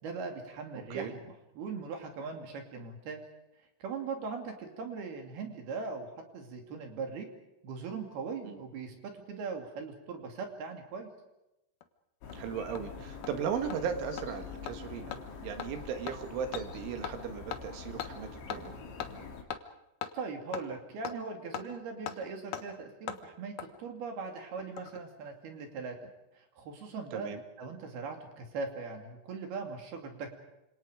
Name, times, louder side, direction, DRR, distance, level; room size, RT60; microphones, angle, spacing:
voice 1, 0.0-3.2 3.8-7.3 7.6-11.1 20.1-26.0 26.6-27.3 27.6-30.3, right 4 dB, 55° right, 4 dB, 4.2 m, -40 dB
voice 2, 0.7-1.1 8.4-8.6 12.3-18.7 27.1-27.4, right 7 dB, 70° right, 7 dB, 4.2 m, -37 dB
Hammer, 11.8-11.9 12.3-12.4 12.7-12.8 13.2-13.3 13.7-13.8 14.2-14.3 14.7-14.8 15.1-15.2 15.6-15.7 16.1-16.2 16.5-16.6 17.0-17.2 17.5-17.6 18.0-18.1 18.5-18.6 19.0-19.1 19.5-19.6 20.0-20.1 20.5-20.6 21.0-21.2 21.5-21.6 22.1-22.2 22.5-22.6 23.1-23.2 23.6-23.7 24.6-25.0 25.2-25.3, left 9 dB, 80° left, 1.8 m, -38 dB
sound 1, 12.2-19.4, left 5 dB, 60° left, 5.0 m, -45 dB
28.5 x 26.5 x 5.1 m, 0.92 s
omnidirectional pair, 5.9 m